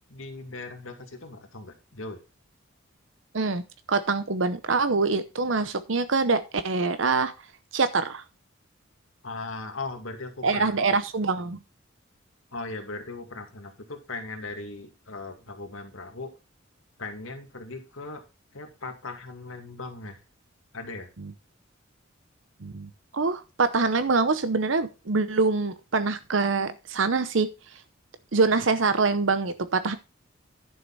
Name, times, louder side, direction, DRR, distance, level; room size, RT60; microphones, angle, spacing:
voice 1, 0.1-2.2 9.2-10.7 12.5-16.3 17.0-18.2 18.5-20.2 20.7-21.1, left 3 dB, 90° left, 4 dB, 2.3 m, -38 dB
voice 2, 3.9-7.3 7.7-8.2 10.4-11.6 21.2-21.3 22.6-27.5 28.3-30.0, right 4 dB, 65° right, 12 dB, 0.8 m, -25 dB
11.0 x 6.6 x 4.1 m, 0.28 s
head